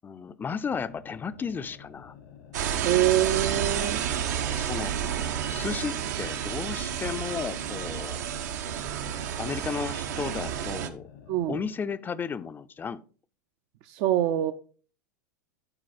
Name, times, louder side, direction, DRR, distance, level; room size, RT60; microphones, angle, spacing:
voice 1, 0.0-2.1 4.5-5.0 5.5-8.2 9.4-11.1 11.5-13.0, left 6 dB, 20° left, 0.6 m, -34 dB
sound 1, 0.7-11.8, left 8 dB, 75° left, 1.6 m, -50 dB
sound 2, 2.5-10.9, right 9 dB, 70° right, 1.0 m, -30 dB
voice 2, 2.8-4.1 11.3-11.6 13.8-14.5, right 12 dB, 55° right, 0.7 m, -25 dB
10.5 x 4.7 x 4.2 m
hypercardioid pair, 95°, 10 cm